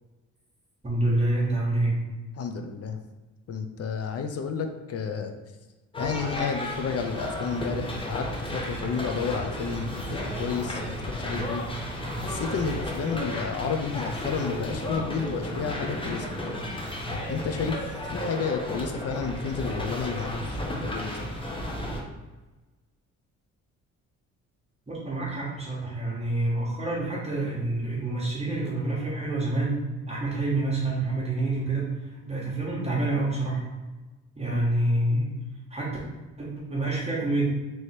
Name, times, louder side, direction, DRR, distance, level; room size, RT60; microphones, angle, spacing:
voice 1, 0.8-2.0 24.9-32.0 32.2-33.6 34.4-35.3 35.7-36.0 36.4-37.5, right 2 dB, 20° right, -5 dB, 1.2 m, -27 dB
voice 2, 2.4-3.0 3.5-5.3 6.0-11.7 12.2-16.3 17.3-17.9 18.1-21.2 34.5-34.6, left 5 dB, 50° left, 6 dB, 0.6 m, -31 dB
sound 1, 5.9-22.0, left 1 dB, 15° left, 0.8 m, -33 dB
sound 2, 6.7-16.5, left 1 dB, 75° left, 1.0 m, -48 dB
3.2 x 3.1 x 4.3 m, 1.2 s
cardioid pair, 90°, 30 cm